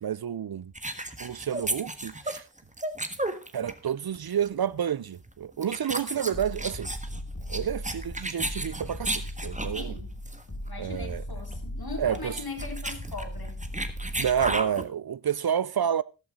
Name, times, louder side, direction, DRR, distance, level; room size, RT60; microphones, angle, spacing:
voice 1, 0.0-0.7 1.2-2.5 3.5-6.9 7.5-10.0 10.8-11.2 12.0-12.4 14.2-16.0, right 8 dB, 55° right, 0.5 m, -29 dB
sound 1, 0.6-0.8 1.1-1.3 1.6-1.8 2.1-2.3 2.6-2.8 3.1-3.3 3.6-3.8 4.1-4.8 5.1-5.3 5.6-5.8 6.1-6.3 6.6-6.8 7.1-7.3 7.6-8.8 9.1-9.3 9.6-9.8 10.1-10.3 10.6-10.8 11.1-11.3 11.6-11.8 12.1-12.8 13.1-13.3 13.6-13.8 14.1-14.3, right 4 dB, 90° right, 2.4 m, -58 dB
sound 2, 0.7-3.9 4.1-4.4 5.1-5.3 5.6-9.9 10.3-10.4 10.7-10.8 10.9-11.2 11.5-11.6 12.0-14.9, right 1 dB, 15° right, 1.5 m, -33 dB
sound 3, 6.3-14.6, equal, 35° left, 4.9 m, -38 dB
voice 2, 9.7-10.1 10.6-13.6, left 3 dB, 55° left, 3.9 m, -39 dB
14.0 x 11.5 x 3.7 m
cardioid pair, 45°, 44 cm